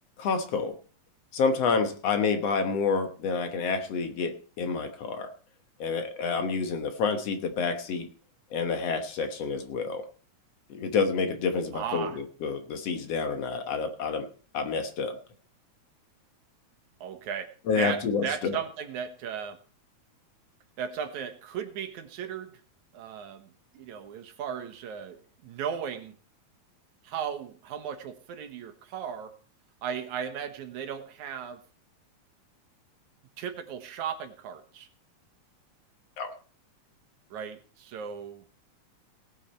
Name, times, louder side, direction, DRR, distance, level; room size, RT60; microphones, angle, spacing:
voice 1, 0.2-0.7 1.3-5.3 5.8-8.1 8.5-10.1 10.7-14.3 14.5-15.2 17.7-18.6 36.2-36.3, left 5 dB, 60° left, 7 dB, 2.2 m, -28 dB
voice 2, 11.7-12.2 17.0-17.5 17.8-19.6 20.8-22.6 22.9-26.1 27.0-29.3 29.8-31.6 33.4-34.9 37.3-38.4, right 8 dB, 80° right, 8 dB, 2.7 m, -36 dB
18.0 x 8.3 x 4.4 m, 0.39 s
omnidirectional pair, 3.4 m